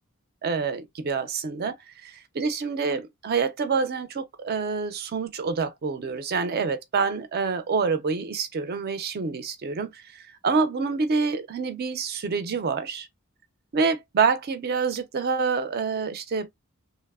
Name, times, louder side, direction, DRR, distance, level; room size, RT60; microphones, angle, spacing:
voice 1, 0.4-13.1 13.7-16.5, right 5 dB, 45° right, 0.4 m, -27 dB
2.9 x 2.0 x 2.2 m
head